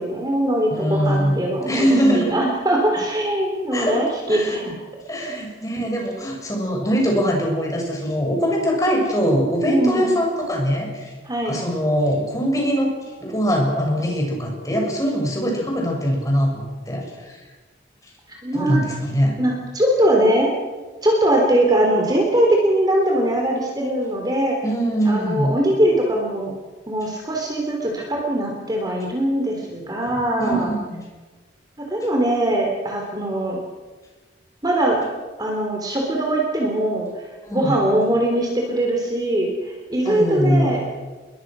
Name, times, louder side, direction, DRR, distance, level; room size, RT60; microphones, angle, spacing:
voice 1, 0.0-4.8 9.7-10.2 11.3-11.6 18.4-18.8 19.4-20.5 21.0-24.6 25.1-26.5 26.9-30.7 31.8-33.6 34.6-35.0 35.4-37.1 37.5-40.9, right 1 dB, 20° right, 0 dB, 3.5 m, -21 dB
voice 2, 0.7-2.3 3.7-4.6 5.1-11.1 11.5-12.9 13.2-17.4 18.5-19.4 24.6-25.5 30.4-31.0 37.4-37.9 40.1-40.7, equal, 20° left, 0 dB, 6.8 m, -22 dB
29.0 x 22.5 x 6.3 m, 1.3 s
head